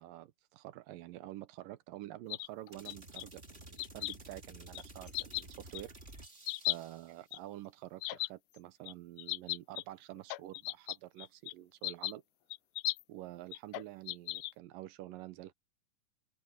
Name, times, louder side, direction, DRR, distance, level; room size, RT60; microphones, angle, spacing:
voice 1, 0.0-5.9 6.7-12.2 13.1-15.5, right 15 dB, 85° right, 2.6 m, -48 dB
sound 1, 2.3-3.2 3.8-4.2 4.8-4.9 5.1-5.4 5.8-5.9 6.5-6.8 7.3-7.4 8.0-8.3 8.9-9.0 9.2-9.8 10.2-11.5 11.8-12.1 12.5-13.0 13.5-14.5, left 20 dB, 80° left, 2.0 m, -36 dB
sound 2, 2.7-7.2, right 2 dB, 20° right, 3.3 m, -52 dB
open air
omnidirectional pair, 3.8 m